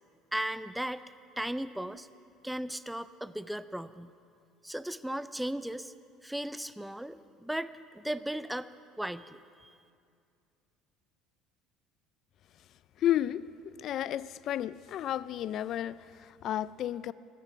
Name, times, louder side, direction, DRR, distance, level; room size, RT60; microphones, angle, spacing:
voice 1, 0.3-1.0 1.4-2.1 2.4-4.1 4.6-5.9 6.2-8.7 9.0-9.8, right 1 dB, 5° right, 0.5 m, -36 dB
voice 2, 13.0-17.1, left 11 dB, 55° left, 0.4 m, -32 dB
16.0 x 13.0 x 5.8 m
supercardioid pair, 105°, 0 cm